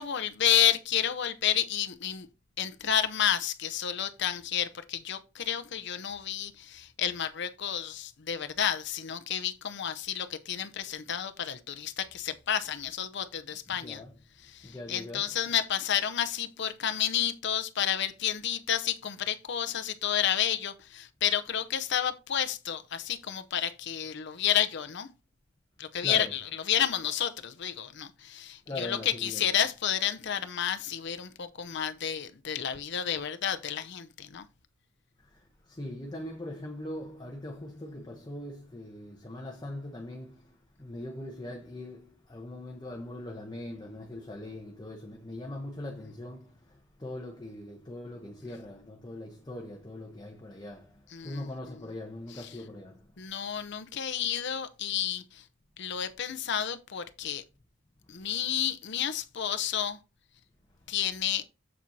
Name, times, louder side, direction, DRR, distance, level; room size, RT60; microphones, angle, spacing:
voice 1, 0.0-2.3 2.6-14.0 14.5-25.1 25.8-26.4 26.7-34.4 51.1-51.4 53.2-55.4 55.8-57.4 58.1-60.0 60.9-61.4, left 9 dB, 60° left, 0.6 m, -30 dB
voice 2, 13.8-14.1 14.6-15.4 26.0-26.4 28.7-29.5 35.2-53.1, left 1 dB, 20° left, 0.9 m, -41 dB
7.4 x 7.3 x 2.7 m
head